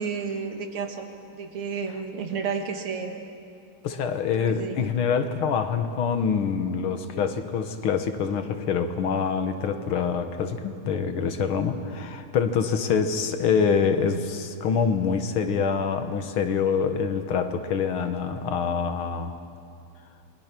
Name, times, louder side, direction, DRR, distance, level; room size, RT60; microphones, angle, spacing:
voice 1, 0.0-3.2 4.4-4.9, right 5 dB, 75° right, 4 dB, 2.5 m, -32 dB
voice 2, 3.8-19.4, left 6 dB, 75° left, 8 dB, 2.1 m, -25 dB
27.5 x 21.5 x 6.0 m, 2.5 s
omnidirectional pair, 2.4 m